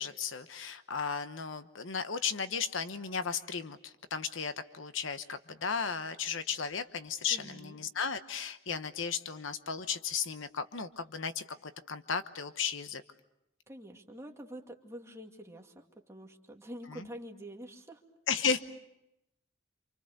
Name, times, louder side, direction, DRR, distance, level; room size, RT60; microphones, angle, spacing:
voice 1, 0.0-13.0 18.3-18.6, left 6 dB, 65° left, 10 dB, 1.1 m, -35 dB
voice 2, 7.3-7.8 13.7-18.0 18.4-18.6, equal, 15° right, 1 dB, 2.4 m, -47 dB
28.0 x 27.5 x 6.7 m, 0.86 s
head